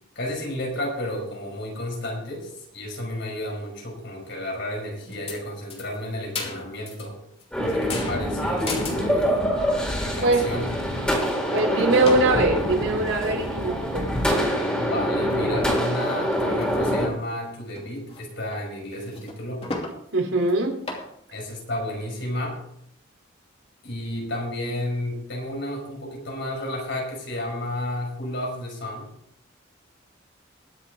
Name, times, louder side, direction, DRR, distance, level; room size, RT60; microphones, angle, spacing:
voice 1, 0.2-7.2 7.6-9.3 10.0-10.7 14.8-19.7 21.3-22.6 23.8-29.1, left 1 dB, 65° left, 0 dB, 5.6 m, -32 dB
sound 1, 5.1-5.4 5.7-7.1 7.4-9.5 10.0-10.1 10.3-10.6 11.0-13.5 14.0-14.1 14.3-14.7 15.2-15.6 16.0-16.9 17.2-17.3 17.8-18.2 18.5-18.6 18.9-20.0 20.4-20.5 20.8-21.1, left 3 dB, 30° left, 2.8 m, -37 dB
sound 2, 7.5-17.1, equal, 5° left, 3.8 m, -25 dB
voice 2, 11.5-14.1 20.1-20.8, right 2 dB, 90° right, 2 dB, 3.4 m, -22 dB
22.0 x 7.5 x 3.8 m, 0.68 s
head